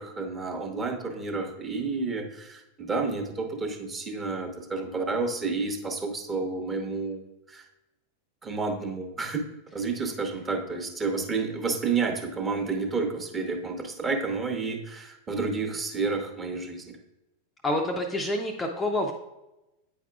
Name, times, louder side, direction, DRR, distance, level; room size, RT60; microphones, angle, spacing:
voice 1, 0.0-7.2 7.5-7.6 8.4-9.4 9.7-17.0, right 4 dB, 20° right, 3 dB, 0.9 m, -30 dB
voice 2, 17.6-19.1, left 1 dB, 15° left, 2 dB, 0.5 m, -27 dB
8.7 x 4.7 x 2.3 m, 0.95 s
figure-of-eight pair, 90°, 0 cm